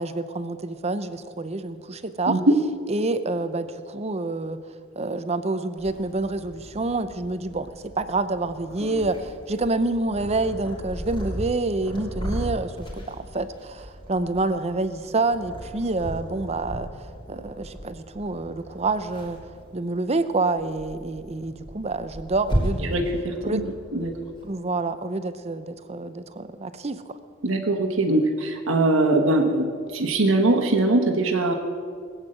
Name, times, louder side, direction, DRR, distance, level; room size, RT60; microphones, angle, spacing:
voice 1, 0.0-2.4 2.9-4.6 5.0-17.0 17.3-19.4 19.7-23.0 23.4-23.6 24.4-27.2, right 2 dB, 30° right, 12 dB, 0.6 m, -27 dB
Purr, 5.8-24.5, equal, 25° left, 3.2 m, -36 dB
voice 2, 22.9-24.1 27.4-31.5, right 2 dB, 70° right, 4 dB, 1.3 m, -22 dB
19.0 x 8.1 x 7.8 m, 2.2 s
head